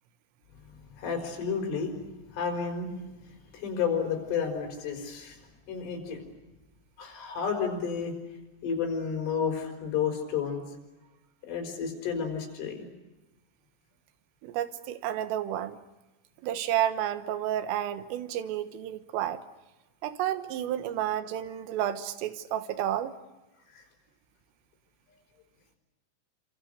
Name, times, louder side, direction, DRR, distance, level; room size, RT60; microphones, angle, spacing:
voice 1, 1.0-2.0 2.3-2.9 3.5-5.4 5.7-6.2 7.0-8.2 8.6-10.6 11.4-12.9, left 6 dB, 70° left, 4 dB, 7.6 m, -31 dB
voice 2, 14.4-15.8 16.4-19.4 20.0-23.1, right 11 dB, 80° right, 11 dB, 3.8 m, -31 dB
28.5 x 27.0 x 6.7 m, 1.0 s
omnidirectional pair, 6.0 m